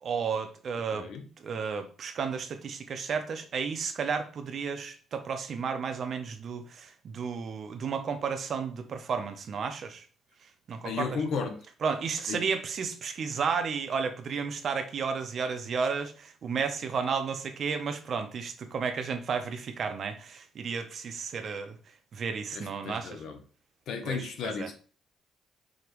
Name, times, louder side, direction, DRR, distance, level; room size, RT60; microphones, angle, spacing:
voice 1, 0.0-1.1 1.4-10.0 10.7-11.2 11.8-21.8 22.1-23.2 24.0-24.7, right 5 dB, 55° right, 0.7 m, -32 dB
voice 2, 0.9-1.2 10.8-11.6 12.3-12.4 22.5-23.4 23.9-24.7, left 5 dB, 75° left, 0.9 m, -34 dB
5.1 x 2.9 x 3.0 m
cardioid pair, 105°, 0 cm